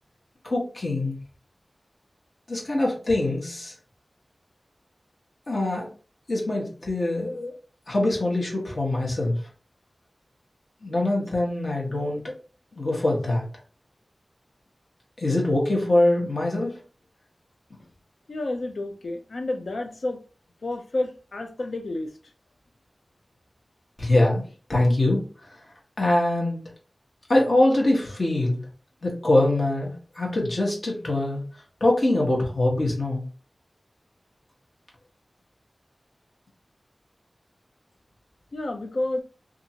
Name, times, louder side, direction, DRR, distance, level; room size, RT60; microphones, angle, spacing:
voice 1, 0.4-1.2 2.5-3.7 5.5-5.9 6.3-7.5 7.9-9.4 10.8-12.3 12.7-13.4 15.2-16.8 24.0-25.6 26.0-26.6 27.3-28.6 29.0-31.4 31.8-33.2, left 1 dB, 60° left, 1.1 m, -23 dB
voice 2, 18.3-20.2 20.6-22.1 38.5-39.2, left 2 dB, 85° left, 0.5 m, -30 dB
2.7 x 2.5 x 2.8 m
wide cardioid pair, 65°, 0 cm